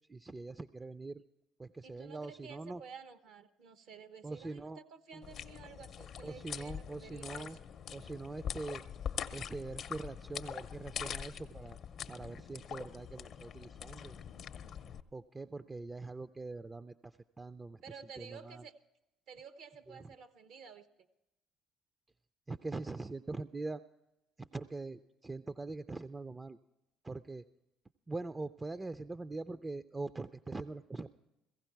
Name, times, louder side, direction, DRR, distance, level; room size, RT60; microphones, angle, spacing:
voice 1, 0.1-1.2 1.6-2.8 4.2-4.8 5.1-5.2 6.2-7.6 7.9-8.8 9.3-11.8 12.1-14.2 15.1-17.8 18.2-18.6 19.9-20.0 22.5-23.8 24.4-26.6 27.0-27.5 28.1-31.1, right 3 dB, 20° right, 11 dB, 0.4 m, -43 dB
voice 2, 1.8-7.5 17.8-18.7 19.3-21.1, right 6 dB, 65° right, 11 dB, 0.8 m, -52 dB
sound 1, 5.2-15.0, left 8 dB, 55° left, 0.6 m, -43 dB
16.0 x 15.5 x 4.6 m, 0.95 s
hypercardioid pair, 60°, 0 cm